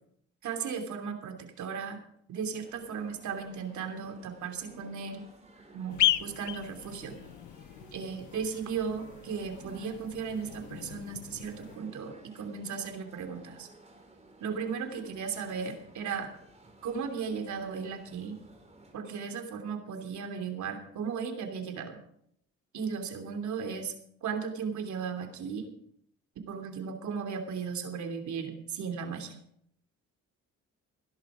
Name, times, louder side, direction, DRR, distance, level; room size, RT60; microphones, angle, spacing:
voice 1, 0.4-2.0 2.3-5.3 5.7-7.2 7.9-13.7 14.4-16.3 16.8-18.4 18.9-22.0 22.7-23.9 24.2-25.7 26.3-29.4, right 6 dB, 70° right, 5 dB, 3.0 m, -36 dB
sound 1, 2.6-18.9, right 2 dB, 20° right, 4.0 m, -55 dB
sound 2, 5.9-11.8, left 14 dB, 75° left, 0.8 m, -35 dB
16.5 x 11.0 x 5.0 m, 0.69 s
cardioid pair, 90°, 30 cm